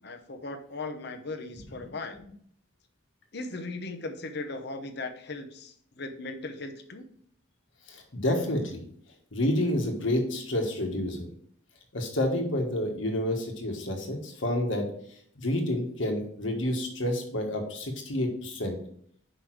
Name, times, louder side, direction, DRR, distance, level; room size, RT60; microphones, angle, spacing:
voice 1, 0.0-2.2 3.3-7.1, left 3 dB, 55° left, 7 dB, 0.8 m, -38 dB
voice 2, 7.9-8.8 9.3-11.3 11.9-14.9 15.4-18.8, left 1 dB, 75° left, 3 dB, 1.5 m, -29 dB
6.1 x 5.3 x 4.7 m, 0.63 s
head